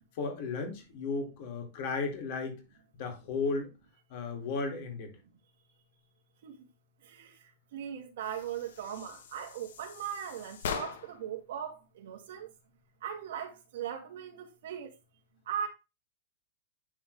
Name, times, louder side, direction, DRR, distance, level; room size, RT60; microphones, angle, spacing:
voice 1, 0.1-2.6 3.0-3.7 4.1-5.1, left 4 dB, 40° left, 2.1 m, -34 dB
voice 2, 7.7-12.5 13.0-14.9 15.5-15.7, right 9 dB, 65° right, 2.0 m, -39 dB
sound 1, 8.2-11.3, left 7 dB, 80° left, 1.2 m, -41 dB
10.5 x 3.7 x 3.2 m
supercardioid pair, 180°, 0 cm